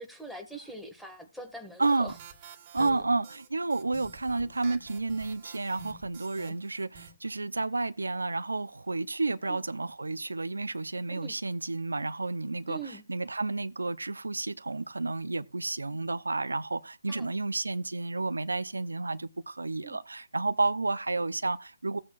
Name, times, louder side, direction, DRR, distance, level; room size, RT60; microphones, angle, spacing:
voice 1, 0.0-2.1 2.8-3.0 6.4-6.5 9.4-9.6 11.1-11.3 12.7-13.0 17.1-17.3 19.8-20.0, right 2 dB, ahead, 1.7 m, -43 dB
sound 1, 1.8-7.1, right 6 dB, 30° right, 1.9 m, -49 dB
voice 2, 1.8-2.1 2.7-22.0, right 3 dB, 85° right, 0.6 m, -31 dB
16.5 x 8.6 x 2.4 m
figure-of-eight pair, 145°, 0 cm